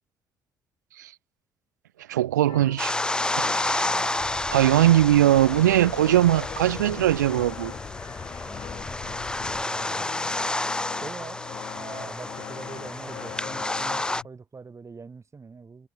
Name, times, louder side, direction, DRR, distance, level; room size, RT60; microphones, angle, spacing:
voice 1, 2.1-2.9 3.4-3.9 4.5-7.7, right 13 dB, 75° right, 0.5 m, -20 dB
sound 1, 2.5-14.3, left 12 dB, 55° left, 2.9 m, -42 dB
sound 2, 2.8-14.2, left 2 dB, 10° left, 0.5 m, -30 dB
voice 2, 3.9-4.2 8.4-9.2 9.6-10.1 11.0-11.4 11.7-15.9, right 4 dB, 30° right, 5.0 m, -44 dB
sound 3, 4.2-9.6, left 5 dB, 35° left, 4.7 m, -42 dB
figure-of-eight pair, 45°, 10 cm